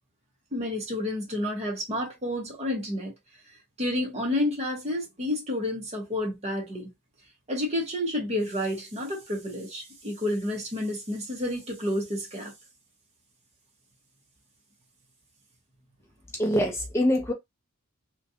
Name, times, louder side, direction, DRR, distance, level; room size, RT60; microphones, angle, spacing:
voice 1, 0.5-3.1 3.8-6.9 7.5-12.5, left 1 dB, 30° right, 1.1 m, -30 dB
voice 2, 16.4-17.3, equal, 10° left, 0.4 m, -24 dB
3.1 x 2.4 x 2.7 m
head